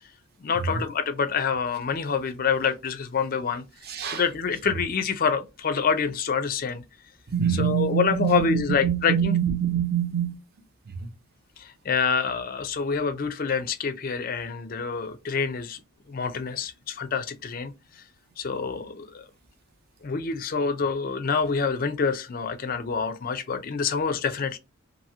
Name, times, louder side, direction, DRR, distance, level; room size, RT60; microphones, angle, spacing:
voice 1, 0.4-3.6 4.1-6.8 7.6-9.3 11.6-15.8 16.1-17.7 18.4-19.2 20.0-24.6, left 5 dB, 40° left, 0.4 m, -27 dB
voice 2, 3.8-4.3 4.7-4.8 7.3-10.4 10.9-11.1, right 8 dB, 45° right, 0.5 m, -26 dB
2.8 x 2.6 x 2.7 m
head